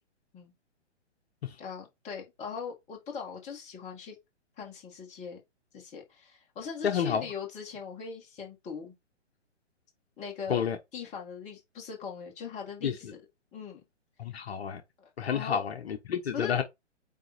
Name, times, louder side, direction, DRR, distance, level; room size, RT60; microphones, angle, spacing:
voice 1, 1.6-4.2 4.6-5.4 5.7-8.9 10.2-10.6 10.9-13.2 13.5-13.8 15.0-15.6 16.3-16.6, left 6 dB, 20° left, 2.1 m, -40 dB
voice 2, 6.8-7.2 10.5-10.8 12.8-12.9 14.2-14.8 15.2-16.6, left 8 dB, 55° left, 1.3 m, -29 dB
9.0 x 3.1 x 4.4 m
hypercardioid pair, 145°, 37 cm